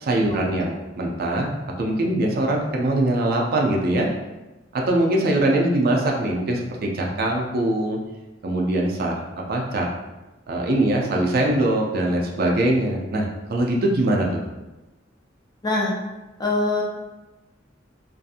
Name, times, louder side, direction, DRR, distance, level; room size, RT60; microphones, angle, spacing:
voice 1, 0.0-4.1 4.7-8.0 8.4-9.2 9.5-9.9 10.5-14.4, right 1 dB, 55° right, -1 dB, 0.4 m, -22 dB
voice 2, 15.6-15.9 16.4-16.8, left 2 dB, 20° left, -3 dB, 0.5 m, -23 dB
2.7 x 2.5 x 2.4 m, 1.1 s
head